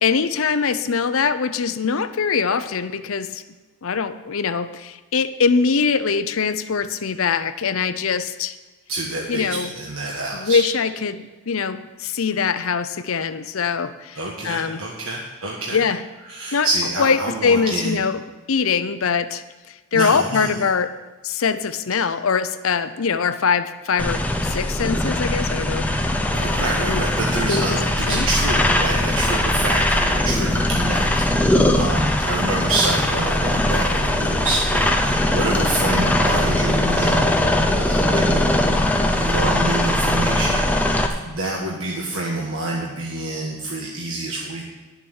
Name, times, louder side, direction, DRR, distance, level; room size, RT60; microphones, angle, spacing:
voice 1, 0.0-3.4 3.8-8.6 9.3-9.7 10.3-14.2 14.4-14.8 15.7-16.0 16.5-16.7 17.0-18.2 18.5-19.4 19.9-20.9 21.2-25.9 26.8-27.0 27.5-27.6 28.1-28.3, left 5 dB, 70° left, 12 dB, 0.6 m, -22 dB
voice 2, 8.9-10.6 14.1-15.8 16.3-18.0 19.9-20.6 26.3-31.1 31.3-37.3 37.8-38.5 39.1-44.6, right 2 dB, 70° right, -2 dB, 1.4 m, -27 dB
sound 1, 24.0-41.1, left 1 dB, 5° left, 0.6 m, -20 dB
11.0 x 7.2 x 6.4 m, 1.3 s
head